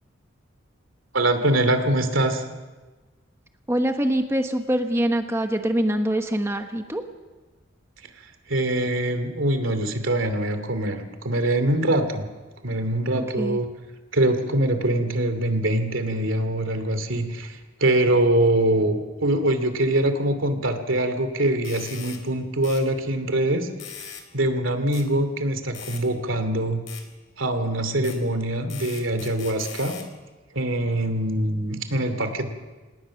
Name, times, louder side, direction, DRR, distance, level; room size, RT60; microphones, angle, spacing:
voice 1, 1.1-2.4 8.5-12.3 12.6-13.7 14.1-23.7 24.3-26.8 27.4-30.0 30.5-32.5, right 1 dB, 85° right, 8 dB, 2.7 m, -23 dB
voice 2, 3.7-7.0 13.1-13.6, right 1 dB, 15° right, 5 dB, 1.1 m, -24 dB
sound 1, 21.6-22.2 22.6-22.8 23.8-24.3 24.9-25.1 25.7-26.0 26.9-27.0 28.0-28.2 28.7-30.1, left 8 dB, 75° left, 3.3 m, -40 dB
27.5 x 19.0 x 6.4 m, 1.2 s
head